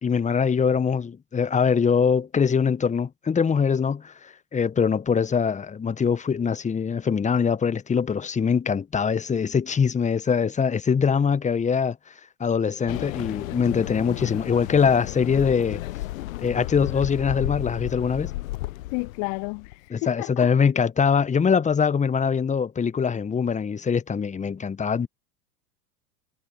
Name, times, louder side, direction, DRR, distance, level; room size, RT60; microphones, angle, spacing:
voice 1, 0.0-12.0 12.4-15.8 16.4-18.3 19.9-25.1, left 6 dB, 15° left, 1.5 m, -23 dB
sound 1, 12.9-19.9, left 17 dB, 55° left, 1.4 m, -33 dB
voice 2, 18.9-20.5, left 37 dB, 35° left, 0.8 m, -32 dB
figure-of-eight pair, 80°, 48 cm